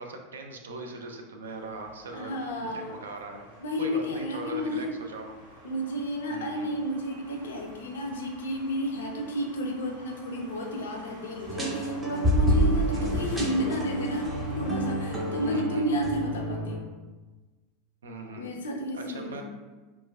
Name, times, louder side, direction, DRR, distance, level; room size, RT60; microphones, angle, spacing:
voice 1, 0.0-2.3 2.6-3.5 3.8-5.3 6.3-6.8 12.9-13.3 15.5-15.9 18.0-18.5 18.9-19.4, right 3 dB, 75° right, 3 dB, 0.3 m, -40 dB
sound 1, 1.4-15.5, right 2 dB, 90° right, 0.7 m, -48 dB
voice 2, 2.1-3.0 3.6-4.9 5.6-16.9 18.4-19.4, equal, 70° left, 1 dB, 0.4 m, -31 dB
sound 2, 11.5-16.8, right 1 dB, 10° right, 0.6 m, -28 dB
2.9 x 2.1 x 2.2 m, 1.3 s
figure-of-eight pair, 85°, 0 cm